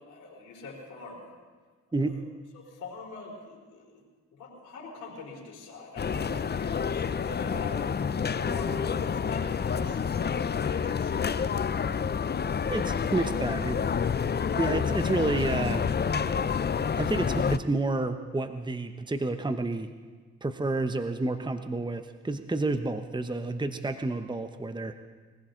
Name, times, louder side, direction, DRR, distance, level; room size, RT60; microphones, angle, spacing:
voice 1, 0.1-1.3 2.1-2.2 2.5-4.0 4.3-7.8 8.3-11.2 12.3-12.6 13.3-13.4 13.6-13.7, left 3 dB, 75° left, -4 dB, 3.9 m, -43 dB
sound 1, 6.0-17.6, left 6 dB, 35° left, 0.6 m, -28 dB
voice 2, 12.7-13.8 14.5-15.8 16.2-16.5 17.0-19.9 20.4-24.9, right 2 dB, 15° right, 8 dB, 1.0 m, -30 dB
22.0 x 15.5 x 3.9 m, 1.5 s
supercardioid pair, 50°, 30 cm